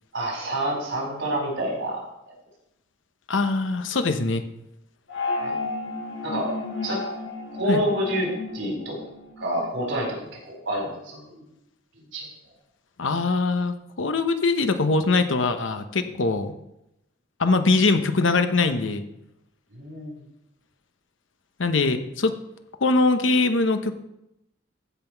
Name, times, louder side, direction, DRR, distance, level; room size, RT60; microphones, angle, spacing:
voice 1, 0.1-2.0 2.3-2.4 5.4-5.7 6.2-6.5 6.8-7.0 7.5-9.0 9.4-11.4 12.1-12.3 19.7-20.2, right 1 dB, 85° right, -2 dB, 4.6 m, -28 dB
voice 2, 3.3-4.4 7.7-7.8 13.0-16.5 17.4-19.1 21.6-22.3 22.8-23.9, left 3 dB, 80° left, 8 dB, 0.9 m, -22 dB
sound 1, 5.1-9.7, left 3 dB, 60° left, 1.7 m, -32 dB
15.0 x 5.8 x 4.6 m, 0.85 s
head